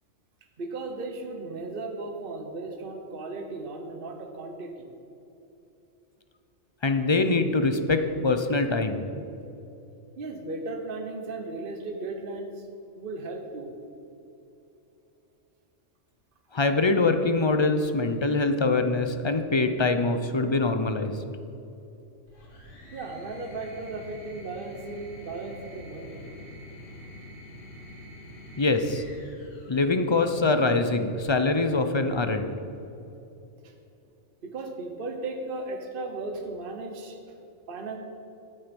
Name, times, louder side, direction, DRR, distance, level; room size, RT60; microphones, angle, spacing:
voice 1, 0.6-4.9 10.2-12.6 13.0-13.7 22.9-26.2 33.6-33.7 34.4-37.2 37.7-38.0, right 3 dB, 50° right, 3 dB, 1.2 m, -36 dB
voice 2, 6.8-9.1 16.5-21.2 28.6-29.0 29.7-32.5, left 3 dB, 35° left, 7 dB, 0.5 m, -24 dB
sound 1, 22.3-30.7 31.9-32.5, left 1 dB, 80° left, 2.4 m, -46 dB
13.5 x 7.6 x 5.3 m, 2.9 s
omnidirectional pair, 1.3 m